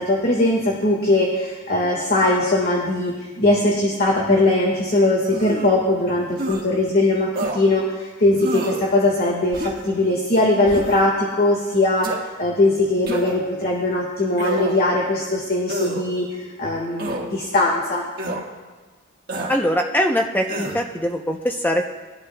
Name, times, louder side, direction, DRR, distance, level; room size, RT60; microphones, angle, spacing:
voice 1, 0.0-12.1 12.4-16.3 16.6-18.0, left 2 dB, 45° left, -2 dB, 1.7 m, -20 dB
sound 1, 5.3-5.8 6.4-6.6 7.3-7.6 8.4-8.9 9.5-9.9 10.7-11.1 12.0-12.2 13.1-13.5 14.3-14.9 15.7-16.0 17.0-17.3 18.2-18.4 19.3-19.6 20.5-20.8, right 1 dB, 45° right, 1.6 m, -28 dB
voice 2, 19.5-21.9, equal, 10° left, 2 dB, 0.7 m, -22 dB
21.0 x 12.0 x 2.3 m, 1.3 s
head